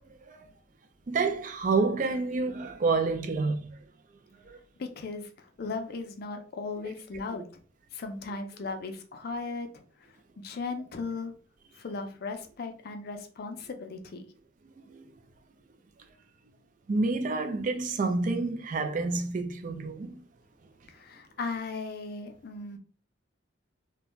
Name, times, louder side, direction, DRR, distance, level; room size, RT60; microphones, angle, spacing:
voice 1, 1.1-3.7 4.5-4.6 14.9-15.1 16.9-20.2, right 3 dB, 40° right, 0.4 m, -28 dB
voice 2, 4.8-7.5 7.9-9.7 10.0-11.3 11.7-14.2 20.9-22.8, left 4 dB, 50° left, 0.4 m, -37 dB
2.4 x 2.2 x 3.0 m
head